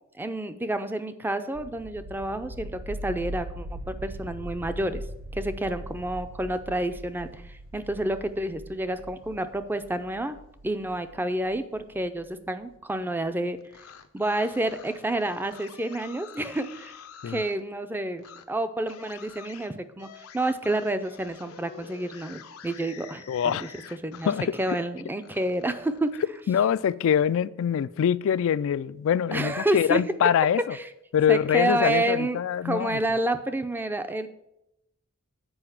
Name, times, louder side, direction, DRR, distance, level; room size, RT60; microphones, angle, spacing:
voice 1, 0.2-5.0 5.3-10.4 10.6-13.6 14.1-16.9 17.3-20.1 20.3-23.2 23.6-23.7 24.0-24.3 24.6-26.2 29.3-30.0 31.3-34.3, right 1 dB, 10° right, 0.5 m, -29 dB
sound 1, 1.5-12.2, right 1 dB, 80° right, 0.8 m, -40 dB
sound 2, 13.6-17.6 18.2-18.4 18.9-24.9 25.2-26.9, left 7 dB, 85° left, 0.7 m, -48 dB
voice 2, 23.3-24.0 24.3-24.5 26.5-30.8 31.1-33.0, left 8 dB, 65° left, 0.3 m, -24 dB
7.9 x 5.0 x 7.2 m
head